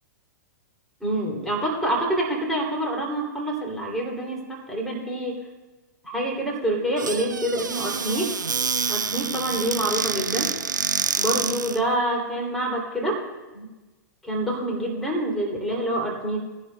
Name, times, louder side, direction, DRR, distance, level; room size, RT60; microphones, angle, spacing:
voice 1, 1.0-5.4 6.0-8.3 8.9-10.5 11.2-13.2 13.5-13.7 14.2-16.4, right 1 dB, 5° left, -2 dB, 2.7 m, -26 dB
Squeak / Cupboard open or close, 7.0-11.8, right 5 dB, 80° right, 0.4 m, -27 dB
20.0 x 10.5 x 2.2 m, 1.2 s
figure-of-eight pair, 105°, 10 cm